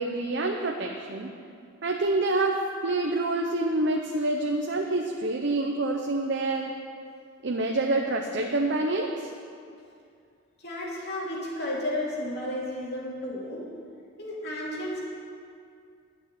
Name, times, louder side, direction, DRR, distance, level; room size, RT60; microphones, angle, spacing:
voice 1, 0.0-1.3 1.8-6.7 7.4-9.3, right 2 dB, 60° right, 1 dB, 0.8 m, -27 dB
voice 2, 10.6-13.6 14.2-15.0, left 1 dB, 55° left, -5 dB, 3.0 m, -32 dB
12.0 x 6.3 x 9.5 m, 2.3 s
head